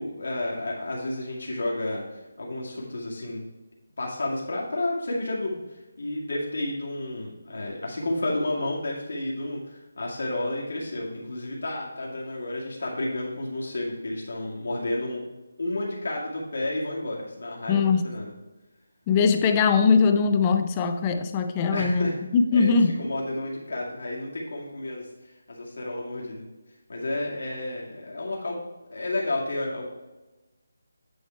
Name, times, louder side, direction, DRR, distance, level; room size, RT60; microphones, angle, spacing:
voice 1, 0.0-3.4 4.0-15.3 15.6-18.3 21.7-22.1 22.5-25.1 25.5-26.5 26.9-28.6 28.9-29.9, left 1 dB, 70° left, -3 dB, 2.0 m, -31 dB
voice 2, 17.7-18.1 19.1-22.9, left 5 dB, 15° left, 8 dB, 0.3 m, -21 dB
9.4 x 4.6 x 4.4 m, 1.1 s
hypercardioid pair, 175°, 0 cm